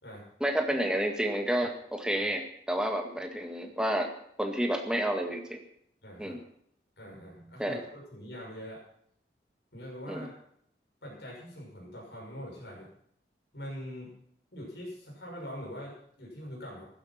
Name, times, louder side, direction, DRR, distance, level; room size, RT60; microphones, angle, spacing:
voice 1, 0.4-4.1 4.4-5.6 6.2-6.4 7.6-7.8 10.1-10.2, right 1 dB, 5° right, 3 dB, 1.8 m, -30 dB
voice 2, 6.0-6.4 7.0-8.8 9.7-10.4 11.0-12.9 13.5-14.1 14.5-16.9, equal, 75° left, -3 dB, 6.4 m, -43 dB
15.5 x 12.0 x 5.9 m, 0.68 s
head